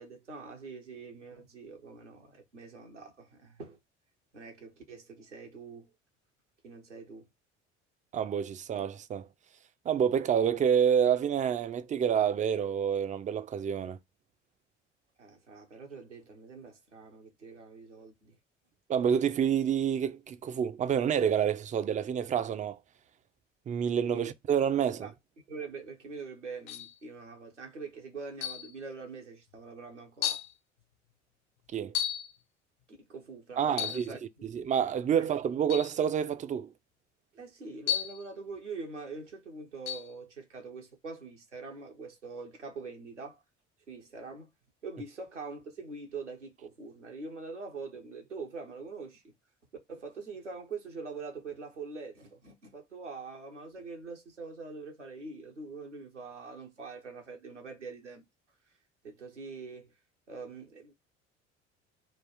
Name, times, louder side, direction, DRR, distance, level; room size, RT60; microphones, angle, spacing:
voice 1, 0.0-3.8 4.3-5.9 6.6-7.3 15.2-18.4 24.1-24.3 24.9-25.1 25.5-30.4 32.9-34.5 35.2-35.3 37.3-43.4 43.9-44.5 44.8-49.3 49.9-58.2 59.0-59.9 60.3-60.9, right 4 dB, 85° right, 1.1 m, -44 dB
voice 2, 8.1-9.3 9.9-14.0 18.9-22.8 23.7-25.1 31.7-31.9 33.6-36.7, right 8 dB, 20° right, 0.4 m, -28 dB
sound 1, 26.7-27.0 28.4-28.7 29.5-29.6 30.2-30.5 31.9-32.3 33.7-34.1 35.7-35.9 37.9-38.3 39.9-40.1, left 11 dB, 55° left, 0.7 m, -33 dB
3.9 x 2.4 x 4.6 m
figure-of-eight pair, 60°, 35 cm